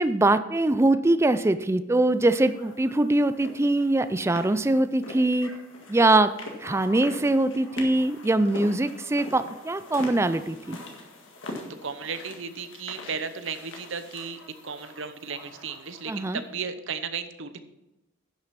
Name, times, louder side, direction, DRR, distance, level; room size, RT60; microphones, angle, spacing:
voice 1, 0.0-5.5 5.9-6.3 6.6-10.8 16.1-16.4, right 2 dB, 15° right, 12 dB, 0.3 m, -22 dB
sound 1, 2.3-16.4, left 2 dB, 65° left, 1.9 m, -43 dB
voice 2, 11.8-17.6, right 5 dB, 65° right, 11 dB, 0.8 m, -35 dB
11.0 x 6.3 x 5.9 m, 0.96 s
head